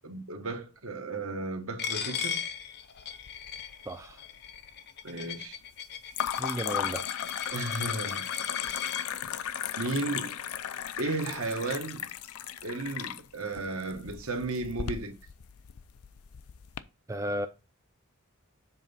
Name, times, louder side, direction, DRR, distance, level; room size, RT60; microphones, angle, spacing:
voice 1, 0.0-2.4 5.0-5.6 7.5-8.2 9.8-10.3 11.0-12.0 12.6-15.1, right 2 dB, 70° right, 1.2 m, -34 dB
Coin (dropping), 1.8-9.1, left 8 dB, 50° left, 0.7 m, -37 dB
sound 1, 3.0-3.7 4.0-4.7 6.1-16.8, left 9 dB, 80° left, 0.5 m, -36 dB
voice 2, 3.9-4.2 6.4-7.0 17.1-17.5, equal, 15° right, 0.4 m, -33 dB
7.5 x 3.5 x 5.3 m
head